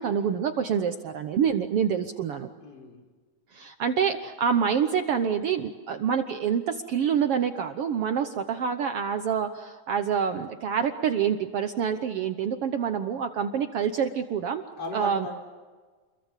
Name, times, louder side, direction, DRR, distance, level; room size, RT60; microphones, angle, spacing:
voice 1, 0.0-2.5 3.5-14.6 14.9-15.3, right 7 dB, 75° right, 7 dB, 1.3 m, -27 dB
voice 2, 2.6-3.0 14.8-15.4, left 1 dB, 25° left, 3 dB, 5.1 m, -36 dB
29.0 x 22.5 x 7.4 m, 1.4 s
omnidirectional pair, 4.0 m